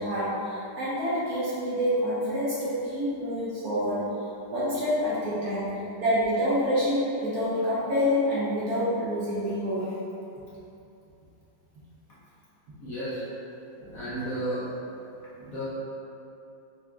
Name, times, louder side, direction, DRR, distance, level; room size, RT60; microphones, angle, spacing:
voice 1, 0.0-4.1 4.5-5.7 6.0-9.9 13.8-14.0, equal, 60° right, -9 dB, 1.2 m, -27 dB
voice 2, 12.8-13.2 13.9-14.7 15.4-15.6, right 1 dB, 55° left, -10 dB, 1.2 m, -33 dB
5.8 x 2.8 x 2.4 m, 2.8 s
omnidirectional pair, 2.0 m